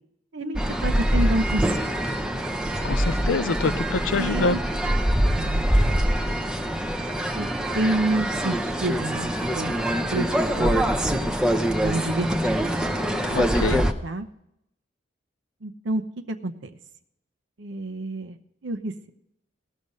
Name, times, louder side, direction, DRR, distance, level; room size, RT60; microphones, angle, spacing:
voice 1, 0.3-1.9 4.2-4.6 5.4-6.1 6.4-6.5 7.3-7.5 7.7-9.3 9.6-9.7 10.1-10.3 10.6-10.8 11.8-12.3 14.0-14.3 15.6-16.0 16.3-16.7 17.6-18.4 18.6-19.1, right 2 dB, 70° right, 9 dB, 0.8 m, -28 dB
sound 1, 0.6-13.9, equal, 5° right, 0.7 m, -24 dB
voice 2, 2.8-4.6 13.3-13.8, left 4 dB, 80° left, 16 dB, 0.5 m, -25 dB
18.5 x 6.5 x 5.4 m, 0.80 s
head